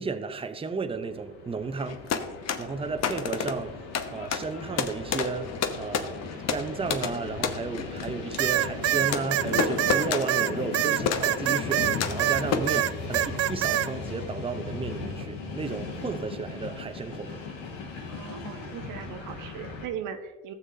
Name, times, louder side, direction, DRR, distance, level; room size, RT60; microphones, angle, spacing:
voice 1, 0.0-2.0 2.6-3.8 4.1-6.2 6.5-17.4, right 4 dB, 15° right, 0.7 m, -33 dB
Train, 0.9-19.9, left 4 dB, 85° left, 1.8 m, -38 dB
sound 1, 1.8-12.9, left 6 dB, 50° left, 0.9 m, -31 dB
sound 2, 8.4-12.4 12.7-13.9, right 13 dB, 45° right, 0.4 m, -25 dB
voice 2, 18.1-20.5, right 8 dB, 70° right, 0.9 m, -38 dB
15.0 x 7.0 x 2.7 m
supercardioid pair, 80°, 33 cm